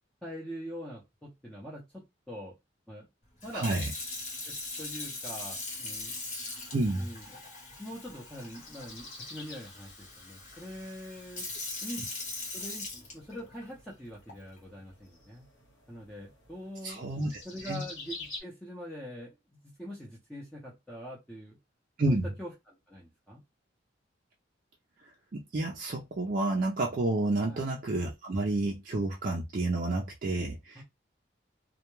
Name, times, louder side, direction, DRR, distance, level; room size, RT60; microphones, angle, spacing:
voice 1, 0.2-2.5 2.9-3.1 3.4-3.7 4.4-6.2 6.9-7.3 7.8-11.5 11.8-12.0 12.5-15.5 15.9-17.1 17.4-21.6 22.1-23.4 27.4-27.6 30.7-30.8, equal, 5° left, 0.6 m, -43 dB
Sink (filling or washing) / Fill (with liquid), 3.4-13.6 14.3-14.6, left 3 dB, 40° left, 0.9 m, -41 dB
voice 2, 3.5-3.8 6.7-7.1 16.8-17.4 17.7-17.8 22.0-22.3 25.3-30.8, right 2 dB, 45° right, 0.4 m, -30 dB
sound 1, 8.2-18.4, left 3 dB, 85° left, 1.1 m, -50 dB
2.2 x 2.1 x 3.0 m
head